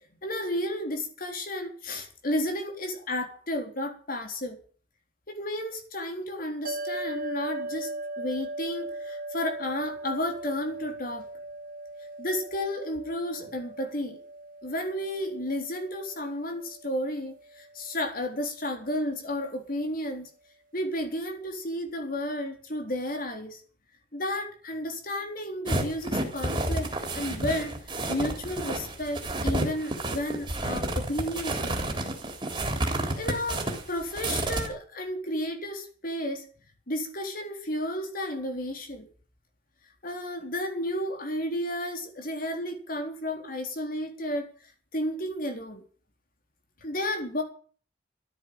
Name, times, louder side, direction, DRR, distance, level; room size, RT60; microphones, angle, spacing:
voice 1, 0.2-4.6 5.3-7.9 8.2-11.3 12.2-14.2 14.6-20.3 20.7-23.6 24.1-26.9 27.1-27.7 28.1-31.9 33.2-36.5 36.9-39.1 40.0-44.5 44.9-45.8 46.8-47.4, left 1 dB, 50° left, 5 dB, 3.9 m, -32 dB
sound 1, 6.6-19.1, right 2 dB, 45° right, 2.1 m, -39 dB
sound 2, 25.7-34.7, right 1 dB, 25° right, 3.6 m, -30 dB
13.5 x 10.0 x 9.0 m, 0.43 s
head